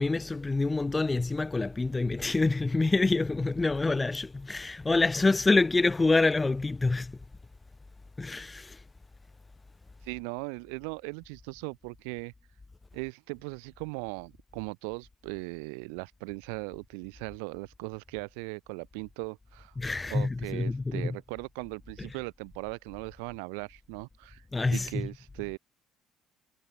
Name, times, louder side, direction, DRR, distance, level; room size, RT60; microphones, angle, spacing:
voice 1, 0.0-7.2 8.2-8.8 19.8-21.1 22.0-22.2 24.5-25.1, left 3 dB, 20° left, 0.6 m, -27 dB
voice 2, 10.0-12.3 12.9-19.7 20.1-24.4 24.7-25.6, right 40 dB or more, 80° right, 0.4 m, -38 dB
hypercardioid pair, 70°, 0 cm